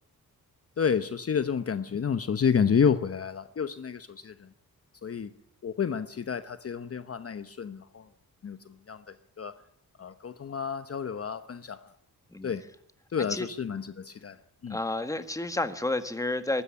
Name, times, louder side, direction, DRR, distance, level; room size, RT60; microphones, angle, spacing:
voice 1, 0.8-4.5 5.0-5.3 5.6-8.1 8.4-9.6 10.0-11.9 12.4-12.7 13.1-14.8, left 7 dB, 40° left, 1.0 m, -30 dB
voice 2, 14.7-16.6, left 2 dB, 10° left, 1.7 m, -30 dB
24.0 x 13.0 x 9.9 m
wide cardioid pair, 125°, 35 cm